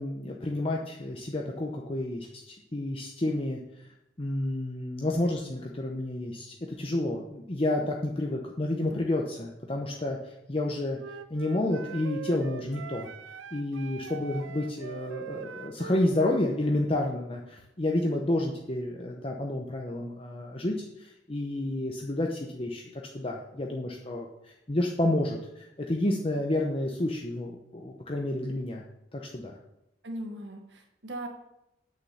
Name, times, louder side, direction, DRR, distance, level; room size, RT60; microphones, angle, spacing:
voice 1, 0.0-3.9 4.2-11.0 11.3-13.1 13.5-22.8 23.1-28.8 29.1-29.6, left 1 dB, 30° left, 0 dB, 0.9 m, -30 dB
Wind instrument woodwind instrument, 11.0-16.5, right 7 dB, 90° right, 0.5 m, -42 dB
voice 2, 30.0-31.3, right 1 dB, 65° right, 3 dB, 1.5 m, -39 dB
9.0 x 6.6 x 6.9 m, 0.87 s
head